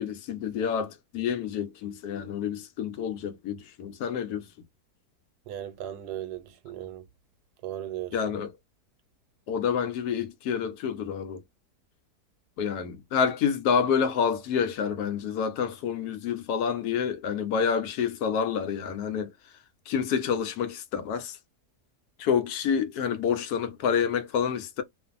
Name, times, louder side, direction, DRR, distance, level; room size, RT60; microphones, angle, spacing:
voice 1, 0.0-4.5 8.1-8.5 9.5-11.4 12.6-19.3 19.9-21.4 22.2-24.8, left 7 dB, 75° left, 1.1 m, -28 dB
voice 2, 5.5-7.1 7.6-8.2, right 12 dB, 90° right, 1.2 m, -37 dB
2.5 x 2.5 x 2.4 m
omnidirectional pair, 1.7 m